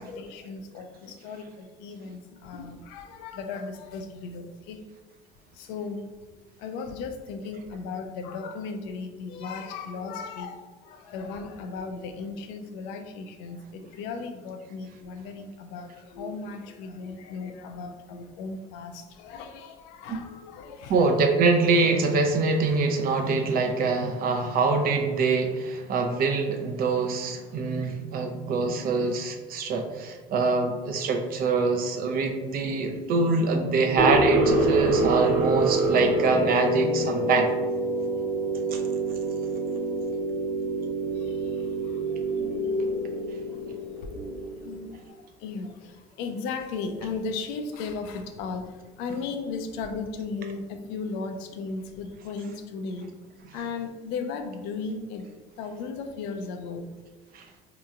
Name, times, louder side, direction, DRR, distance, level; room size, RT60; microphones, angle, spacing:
voice 1, 0.0-4.8 5.5-6.0 6.6-21.1 41.1-42.0 44.6-53.1 53.5-55.3 55.6-56.9, left 4 dB, 85° left, 6 dB, 0.5 m, -36 dB
voice 2, 20.9-37.5 38.7-38.8 57.3-57.4, right 3 dB, 55° right, 4 dB, 0.6 m, -24 dB
sound 1, 34.0-44.8, right 2 dB, 90° right, 1.4 m, -26 dB
4.3 x 2.9 x 2.4 m, 1.3 s
supercardioid pair, 100°, 18 cm